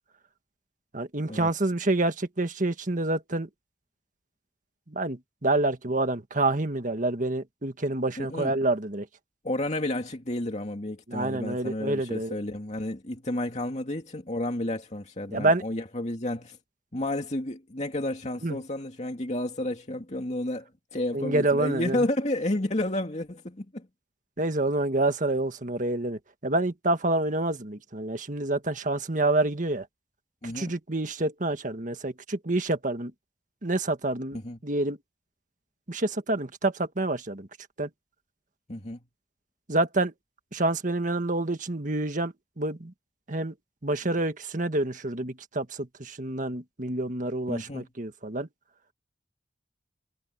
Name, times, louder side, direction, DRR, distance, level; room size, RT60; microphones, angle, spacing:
voice 1, 0.9-3.5 4.9-9.1 11.1-12.4 15.3-15.6 18.4-18.6 21.1-22.0 24.4-29.9 30.4-33.1 33.6-34.4 34.6-35.0 35.9-37.5 37.8-37.9 39.7-40.1 40.5-42.9 43.3-43.5 43.8-48.5, right 2 dB, 45° right, 1.7 m, -28 dB
voice 2, 8.2-8.5 9.4-16.6 16.9-23.9 30.4-30.7 34.3-34.6 38.7-39.0 47.5-47.8, left 1 dB, 40° left, 2.5 m, -31 dB
head